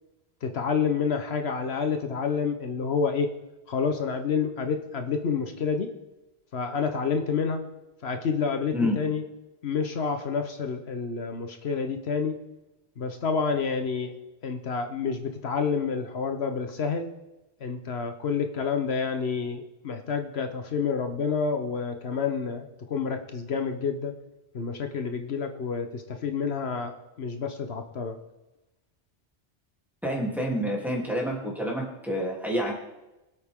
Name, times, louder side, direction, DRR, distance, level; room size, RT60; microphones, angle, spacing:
voice 1, 0.4-3.3 3.7-5.9 6.5-7.6 8.0-9.2 9.6-12.4 13.0-14.1 14.4-17.1 17.6-24.1 24.5-28.2, left 5 dB, 75° left, 6 dB, 1.2 m, -29 dB
voice 2, 30.0-32.7, equal, ahead, -4 dB, 3.0 m, -28 dB
23.0 x 8.2 x 3.6 m, 1.0 s
omnidirectional pair, 1.1 m